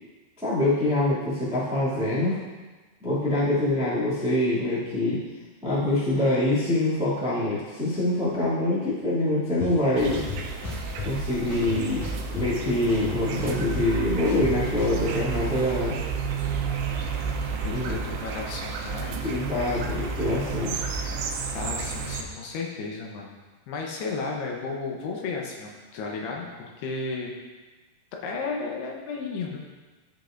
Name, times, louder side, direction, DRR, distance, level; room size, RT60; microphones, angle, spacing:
voice 1, 0.4-2.4 3.0-5.2 5.6-10.2 11.0-12.0 12.3-16.0 17.7-18.0 19.2-20.9, left 1 dB, 5° right, -10 dB, 0.5 m, -25 dB
sound 1, 9.6-9.7 10.1-11.1 11.5-12.6 12.9-15.0, left 6 dB, 50° left, 3.3 m, -35 dB
sound 2, 10.0-22.2, right 5 dB, 80° right, 2.9 m, -31 dB
voice 2, 17.5-19.7 21.5-23.3 23.7-27.3 28.2-29.6, left 4 dB, 75° left, 0 dB, 2.8 m, -33 dB
13.5 x 5.2 x 2.5 m, 1.3 s
omnidirectional pair, 4.9 m